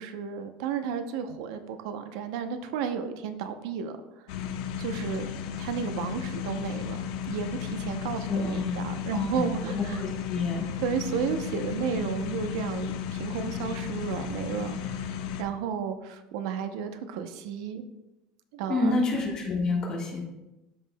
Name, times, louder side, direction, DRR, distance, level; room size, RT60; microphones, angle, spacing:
voice 1, 0.0-4.0 4.8-5.3 5.6-7.0 7.3-10.0 10.8-15.1 15.4-17.9 18.5-19.0, right 7 dB, 80° right, 8 dB, 0.7 m, -33 dB
sound 1, 4.3-15.4, left 8 dB, 85° left, 0.7 m, -34 dB
voice 2, 8.3-8.8 9.1-10.7 18.7-20.2, left 3 dB, 30° left, -1 dB, 1.5 m, -28 dB
12.5 x 5.3 x 2.2 m, 0.98 s
cardioid pair, 175°, 3 cm